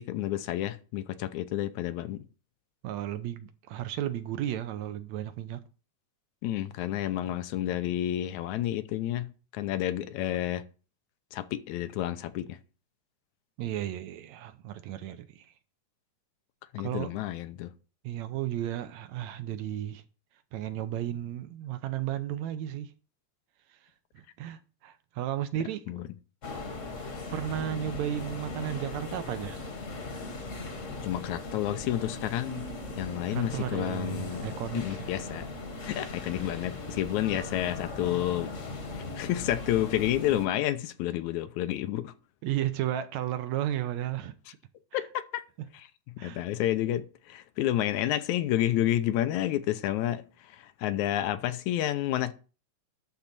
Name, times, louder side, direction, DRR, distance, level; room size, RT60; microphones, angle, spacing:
voice 1, 0.0-2.3 6.4-10.6 11.3-12.6 16.7-17.7 25.9-26.1 31.0-32.7 33.0-34.5 34.7-35.5 35.8-38.5 38.9-42.1 44.9-45.4 45.7-45.9 46.2-52.3, left 13 dB, 85° left, 2.1 m, -30 dB
voice 2, 2.8-5.6 13.6-15.5 16.8-17.1 18.0-20.0 20.5-22.9 24.1-25.9 27.3-29.7 33.3-34.8 37.3-37.4 42.4-44.3 44.9-45.0 46.2-46.4, right 11 dB, 75° right, 2.0 m, -34 dB
sound 1, 26.4-40.5, left 2 dB, 40° left, 1.2 m, -39 dB
12.0 x 4.0 x 7.3 m
omnidirectional pair, 3.4 m